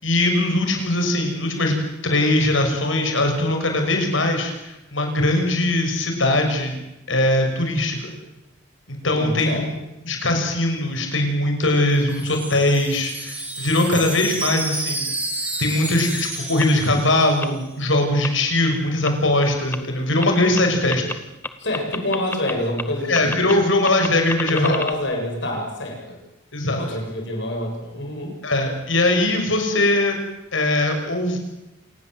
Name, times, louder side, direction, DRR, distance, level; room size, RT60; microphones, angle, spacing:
voice 1, 0.0-6.7 7.1-8.1 8.9-9.8 10.0-15.1 15.6-21.0 23.1-24.8 26.5-26.8 28.4-30.2 30.5-31.4, left 1 dB, 85° left, 4 dB, 6.3 m, -21 dB
voice 2, 9.0-9.6 20.7-20.8 21.6-23.5 24.5-26.2 26.8-28.3, left 1 dB, 65° left, 1 dB, 7.9 m, -27 dB
Wind chime, 11.6-17.6, right 2 dB, 10° right, 4.4 m, -31 dB
sound 1, 16.6-16.7 17.4-17.5 18.2-18.3 19.0-19.1 19.7-19.8 20.2-20.3 20.6-20.7 20.9-21.1 21.4-22.5 22.8-22.9 23.1-23.5 23.8-24.9, left 2 dB, 10° left, 1.2 m, -28 dB
27.5 x 19.5 x 7.9 m, 0.92 s
head